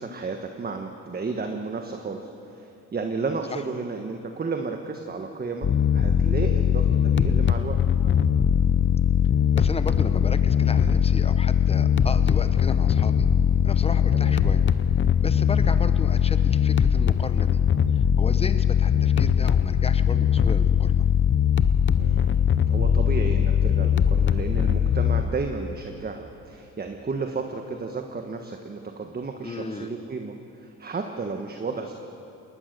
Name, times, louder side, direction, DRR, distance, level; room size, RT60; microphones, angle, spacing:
voice 1, 0.0-5.7 5.9-7.8 14.1-14.4 18.9-19.1 22.0-31.9, right 4 dB, 30° right, 4 dB, 1.4 m, -33 dB
sound 1, 5.6-25.2, left 8 dB, 40° left, 0.8 m, -21 dB
voice 2, 9.5-13.3 13.6-14.6 15.2-17.6 17.9-21.0 29.4-29.9, left 3 dB, 20° left, 10 dB, 1.1 m, -34 dB
20.0 x 19.5 x 6.8 m, 2.9 s
cardioid pair, 90°, 30 cm